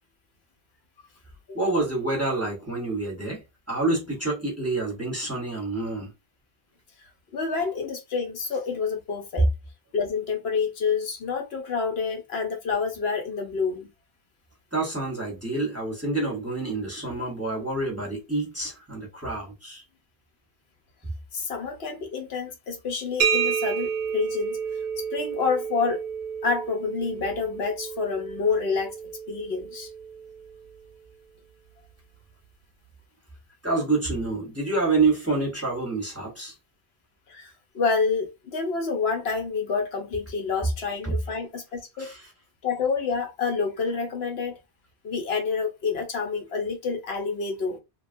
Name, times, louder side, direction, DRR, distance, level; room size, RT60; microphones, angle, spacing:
voice 1, 1.5-3.4 3.7-6.1 14.7-19.8 33.6-36.5 41.0-41.2 42.0-42.2, right 3 dB, 15° right, 0.8 m, -27 dB
voice 2, 7.3-9.5 9.9-13.9 21.3-24.6 25.0-26.0 26.4-28.9 29.3-29.9 37.3-42.1 42.6-44.6 45.0-47.8, left 5 dB, 70° left, 0.9 m, -28 dB
sound 1, 23.2-30.7, right 7 dB, 60° right, 0.7 m, -30 dB
2.9 x 2.3 x 2.5 m
omnidirectional pair, 1.1 m